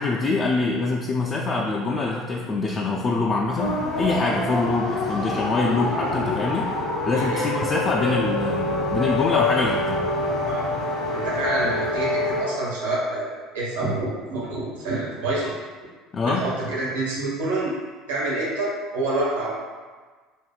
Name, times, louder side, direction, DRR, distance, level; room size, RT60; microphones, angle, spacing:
voice 1, 0.0-6.7 7.0-10.0 16.1-16.4, left 3 dB, 35° left, -2 dB, 0.4 m, -24 dB
sound 1, 3.6-12.4, left 2 dB, 55° left, 1.0 m, -26 dB
voice 2, 7.1-7.5 10.4-10.7 11.1-15.5 16.3-17.8 18.1-19.5, right 2 dB, 75° right, -6 dB, 1.1 m, -27 dB
5.2 x 2.7 x 2.3 m, 1.4 s
figure-of-eight pair, 65°, 0 cm